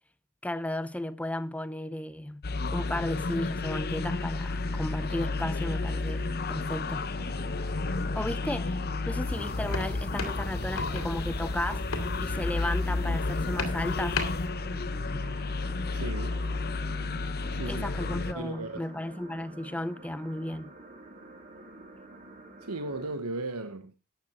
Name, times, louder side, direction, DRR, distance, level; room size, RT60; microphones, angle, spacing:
voice 1, 0.4-2.4 2.7-7.1 8.1-11.8 12.2-14.2 17.7-20.7, left 1 dB, 5° left, 0.6 m, -34 dB
sound 1, 2.4-18.3, left 3 dB, 45° left, 0.8 m, -32 dB
sound 2, 4.6-23.1, right 2 dB, 35° right, 3.5 m, -48 dB
sound 3, 9.2-14.5, left 2 dB, 70° left, 2.5 m, -35 dB
voice 2, 15.9-16.4 17.5-17.9 18.2-18.8 22.6-23.9, right 2 dB, 85° right, 1.3 m, -36 dB
12.5 x 9.4 x 4.4 m
head